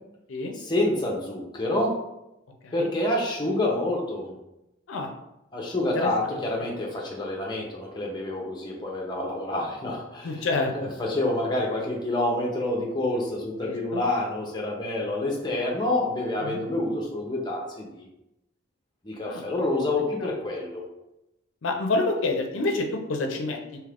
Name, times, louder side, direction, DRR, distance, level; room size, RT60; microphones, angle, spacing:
voice 1, 0.5-1.9 2.7-4.4 5.5-10.3 10.7-18.1 19.0-20.8, left 1 dB, 20° left, -1 dB, 0.5 m, -28 dB
voice 2, 5.9-6.7 10.2-10.9 13.6-14.0 16.4-16.6 19.2-19.4 20.2-20.3 21.6-23.8, left 3 dB, 90° left, 3 dB, 0.5 m, -28 dB
2.8 x 2.4 x 3.3 m, 0.89 s
head